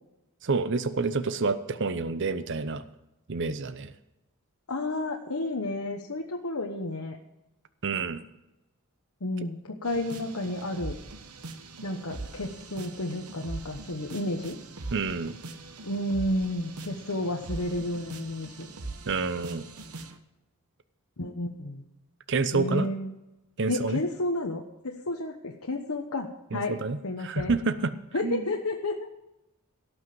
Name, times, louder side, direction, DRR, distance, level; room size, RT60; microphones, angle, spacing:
voice 1, 0.4-2.8 3.3-3.9 7.8-8.2 14.9-15.4 19.1-19.6 22.3-22.9 23.6-24.0 26.5-27.9 28.2-28.5, right 4 dB, 55° right, 12 dB, 0.7 m, -28 dB
voice 2, 4.7-7.2 9.2-11.0 11.8-14.6 15.8-18.7 21.2-21.8 22.5-23.1 23.7-26.7 27.0-27.6 28.1-29.1, left 1 dB, 70° left, 1 dB, 1.1 m, -31 dB
sound 1, 9.8-20.2, right 3 dB, 90° right, 1.2 m, -42 dB
17.5 x 6.4 x 7.7 m, 0.94 s
head